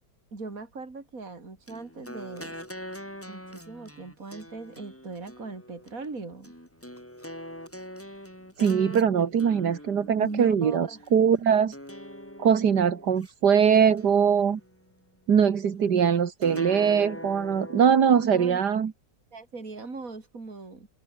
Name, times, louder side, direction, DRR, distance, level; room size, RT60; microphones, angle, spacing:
voice 1, 0.3-2.5 3.3-6.5 10.2-11.0 18.3-18.6 19.3-20.9, right 3 dB, 55° right, 4.2 m, -39 dB
sound 1, 1.7-11.1 11.7-13.3 13.7-14.9 16.4-18.3, equal, 10° left, 5.9 m, -43 dB
voice 2, 8.6-11.8 12.4-14.6 15.3-18.9, right 7 dB, 85° right, 2.3 m, -22 dB
open air
omnidirectional pair, 1.7 m